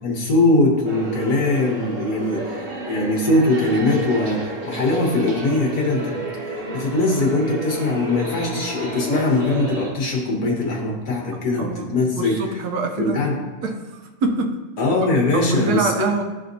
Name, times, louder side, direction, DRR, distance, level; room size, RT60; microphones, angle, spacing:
voice 1, 0.0-6.1 6.7-12.3 13.0-13.4 14.8-16.1, left 2 dB, 75° left, -1 dB, 1.8 m, -21 dB
sound 1, 0.8-9.9, right 1 dB, 55° right, 1.4 m, -31 dB
voice 2, 11.6-13.2 13.6-13.8 14.2-14.6 15.3-16.2, right 3 dB, 85° right, 4 dB, 1.3 m, -24 dB
12.0 x 4.2 x 2.7 m, 1.2 s
omnidirectional pair, 1.6 m